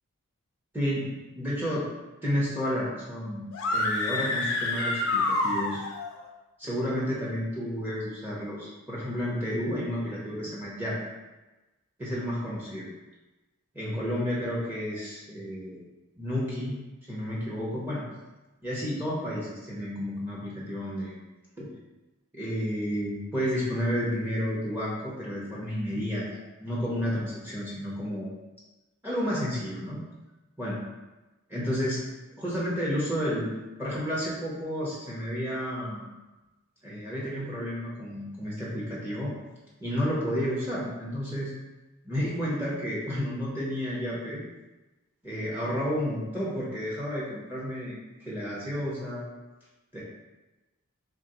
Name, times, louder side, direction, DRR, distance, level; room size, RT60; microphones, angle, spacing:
voice 1, 0.7-1.9 2.2-3.4 3.7-5.8 6.6-11.0 12.0-12.9 13.7-15.8 16.2-16.8 17.1-18.1 18.6-21.2 21.6-21.7 22.3-28.3 29.0-30.0 30.6-30.8 31.5-32.0 32.4-33.5 33.8-36.1 36.8-39.3 39.8-41.5 42.0-44.4 45.2-49.3 49.9-50.0, equal, 10° right, -7 dB, 0.6 m, -31 dB
sound 1, 3.5-6.1, left 2 dB, 90° left, 0.6 m, -28 dB
3.5 x 2.8 x 2.9 m, 1.1 s
head